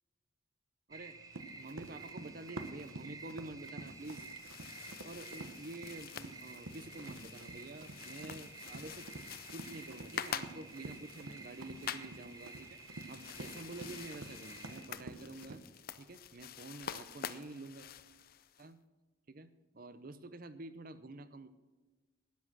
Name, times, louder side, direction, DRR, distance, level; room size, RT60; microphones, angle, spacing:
sound 1, 0.9-14.9, right 3 dB, 20° right, 1.0 m, -52 dB
voice 1, 0.9-4.3 5.0-9.1 9.5-15.6 16.0-17.9 18.6-18.8 19.3-21.5, right 2 dB, 45° right, 13 dB, 0.7 m, -49 dB
Run, 1.3-15.6, right 2 dB, 90° right, 1.0 m, -50 dB
sound 2, 3.8-18.7, left 8 dB, 45° left, 0.5 m, -47 dB
12.5 x 10.0 x 6.2 m, 1.2 s
head